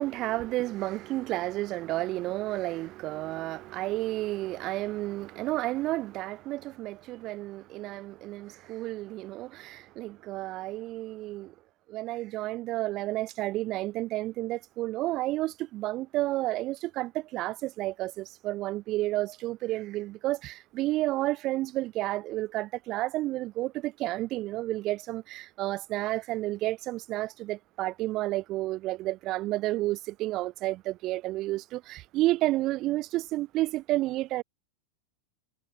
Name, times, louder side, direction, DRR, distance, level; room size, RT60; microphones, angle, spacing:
voice 1, 0.0-11.5 11.9-34.4, right 17 dB, 35° right, 0.6 m, -31 dB
supercardioid pair, 160°, 0 cm